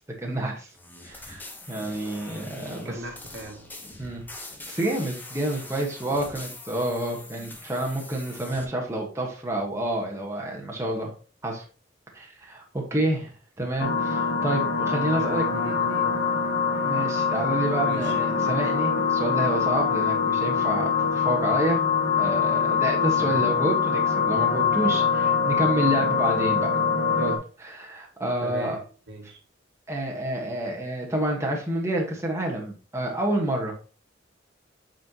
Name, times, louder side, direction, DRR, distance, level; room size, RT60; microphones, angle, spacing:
voice 1, 0.2-0.7 1.0-3.0 4.0-4.2 4.7-11.1 11.4-11.6 12.1-12.6 12.9-15.4 16.8-21.8 22.2-26.7 27.2-28.8 29.9-33.7, right 1 dB, 15° right, 1.5 m, -28 dB
sound 1, 0.7-8.6, left 2 dB, 10° left, 1.1 m, -43 dB
voice 2, 2.8-3.7 15.2-16.2 17.8-18.2 23.2-23.6 28.4-29.4, right 1 dB, 65° right, 1.8 m, -39 dB
sound 2, 13.8-27.4, left 6 dB, 60° left, 1.9 m, -24 dB
8.4 x 4.4 x 3.0 m
head